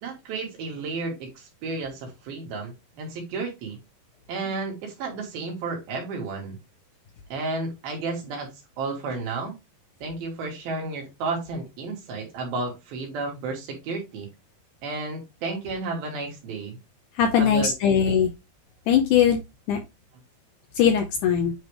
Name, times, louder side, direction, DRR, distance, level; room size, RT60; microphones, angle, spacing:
voice 1, 0.0-3.8 4.3-6.6 7.3-8.5 8.8-9.6 10.0-14.3 14.8-16.8 17.3-18.2, right 3 dB, 80° right, 0 dB, 3.7 m, -32 dB
voice 2, 17.2-18.3 18.9-19.4 19.7-19.8 20.8-21.5, left 8 dB, 75° left, 6 dB, 1.9 m, -20 dB
9.2 x 3.3 x 3.2 m, 0.23 s
omnidirectional pair, 4.3 m